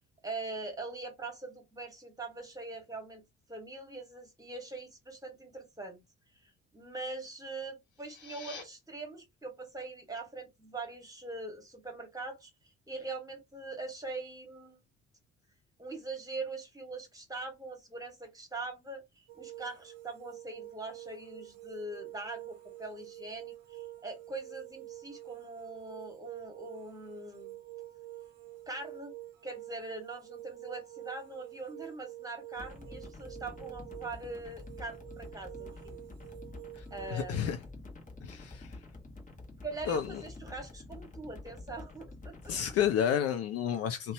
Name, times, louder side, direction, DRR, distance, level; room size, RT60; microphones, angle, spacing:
voice 1, 0.2-3.2 3.5-6.0 6.4-14.8 15.8-27.6 28.7-29.1 29.4-36.0 36.9-37.5 39.6-42.6, right 3 dB, 10° right, 1.4 m, -42 dB
sound 1, 7.8-8.6, left 4 dB, 85° left, 0.7 m, -47 dB
sound 2, 19.3-37.5, right 16 dB, 60° right, 0.6 m, -48 dB
sound 3, 32.6-42.9, left 2 dB, 25° left, 1.0 m, -48 dB
voice 2, 37.1-37.6 38.2-38.8 39.9-40.1 42.5-44.1, left 9 dB, 45° left, 0.5 m, -30 dB
2.6 x 2.2 x 2.7 m
figure-of-eight pair, 50°, 34 cm